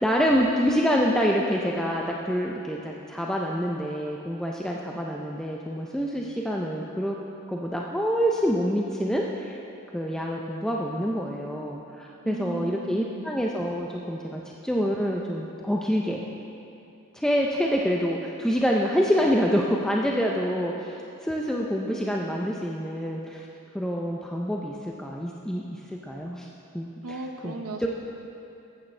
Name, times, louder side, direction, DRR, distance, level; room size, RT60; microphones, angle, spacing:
voice 1, 0.0-7.2 7.5-9.6 9.9-16.3 17.1-21.0 21.2-23.5 23.7-26.5 26.7-26.9 27.4-27.9, equal, 5° left, -2 dB, 0.4 m, -26 dB
voice 2, 12.2-13.3 27.0-27.9, right 2 dB, 85° right, 5 dB, 0.7 m, -36 dB
14.0 x 8.6 x 3.2 m, 2.7 s
head